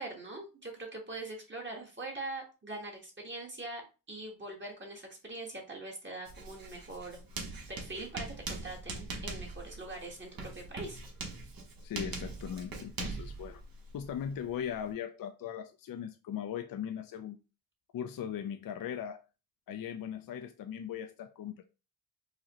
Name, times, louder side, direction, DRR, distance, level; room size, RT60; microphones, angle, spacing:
voice 1, 0.0-7.2 7.7-11.0, right 2 dB, 30° right, 1.2 m, -42 dB
Writing, 6.3-14.9, right 3 dB, 65° right, 1.1 m, -42 dB
voice 2, 11.8-13.6 13.9-17.4 17.9-19.2 19.7-21.7, left 9 dB, 60° left, 0.5 m, -39 dB
4.9 x 2.1 x 2.9 m
cardioid pair, 75°, 38 cm